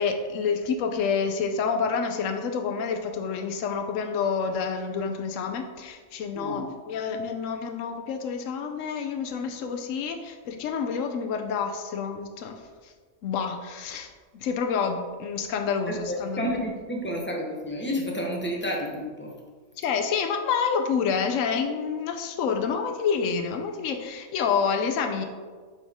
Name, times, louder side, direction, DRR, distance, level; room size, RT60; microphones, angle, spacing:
voice 1, 0.0-12.9 13.2-16.5 19.8-25.3, left 6 dB, 80° left, 5 dB, 1.0 m, -28 dB
voice 2, 6.3-6.7 15.9-19.3, equal, 10° left, -1 dB, 0.8 m, -30 dB
9.1 x 4.1 x 3.6 m, 1.5 s
omnidirectional pair, 1.3 m